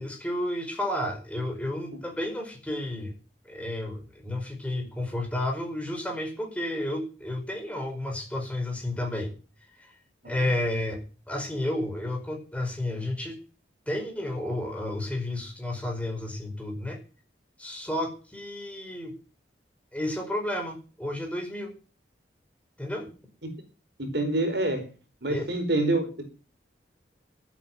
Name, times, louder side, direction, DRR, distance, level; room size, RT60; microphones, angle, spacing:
voice 1, 0.0-3.1 3.4-9.3 9.8-9.9 10.2-13.4 13.9-17.0 17.6-19.1 19.9-21.7 22.8-23.1 25.3-25.4, left 1 dB, 5° left, 2 dB, 5.1 m, -31 dB
voice 2, 24.1-24.8 25.2-26.3, right 2 dB, 65° right, 6 dB, 4.7 m, -26 dB
13.0 x 9.0 x 9.2 m, 0.36 s
head